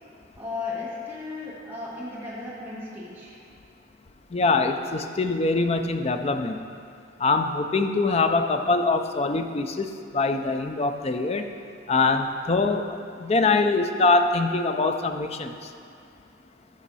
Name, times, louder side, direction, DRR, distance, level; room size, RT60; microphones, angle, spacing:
voice 1, 0.4-3.3, left 3 dB, 10° right, -8 dB, 1.7 m, -35 dB
voice 2, 4.3-6.7 7.2-11.4 11.9-12.9 13.2-15.5, left 3 dB, 30° left, 7 dB, 0.5 m, -23 dB
13.5 x 6.4 x 4.1 m, 2.4 s
head